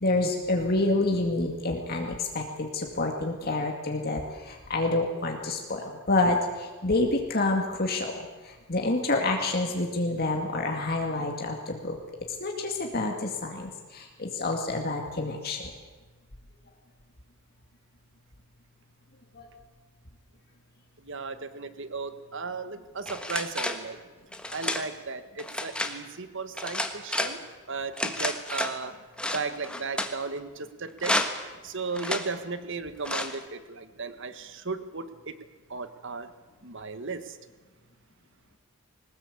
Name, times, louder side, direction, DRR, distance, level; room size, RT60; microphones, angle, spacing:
voice 1, 0.0-12.0 12.4-15.7 19.4-19.5, left 2 dB, 45° left, 2 dB, 2.2 m, -28 dB
voice 2, 21.0-24.0 24.5-27.4 27.7-28.9 29.3-31.2 31.6-35.3 35.7-36.3 36.6-37.4, right 4 dB, 60° right, 11 dB, 1.5 m, -35 dB
sound 1, 23.1-23.8 24.3-24.9 25.4-26.0 26.6-27.4 28.0-28.8 29.2-30.1 31.0-31.5 32.0-32.3 33.1-33.4, left 1 dB, 5° left, 1.5 m, -30 dB
21.5 x 19.5 x 8.5 m, 1.3 s
head